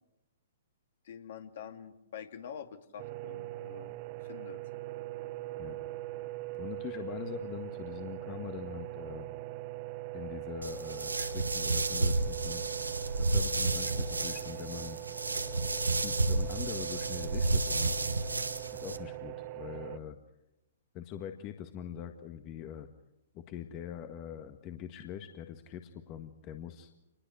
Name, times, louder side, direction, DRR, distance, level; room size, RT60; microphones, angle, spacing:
voice 1, 1.0-3.9 4.2-4.6, left 8 dB, 55° left, 8 dB, 2.4 m, -46 dB
sound 1, 3.0-20.0, right 17 dB, 35° right, 0.9 m, -41 dB
voice 2, 6.6-9.3 10.1-12.6 13.2-15.0 16.0-18.0 18.7-20.2 20.9-22.9 23.3-26.9, left 9 dB, 30° left, 7 dB, 1.7 m, -43 dB
sound 2, 10.6-19.0, right 2 dB, 85° right, 1.6 m, -31 dB
27.0 x 20.5 x 6.4 m, 0.92 s
figure-of-eight pair, 115°, 0 cm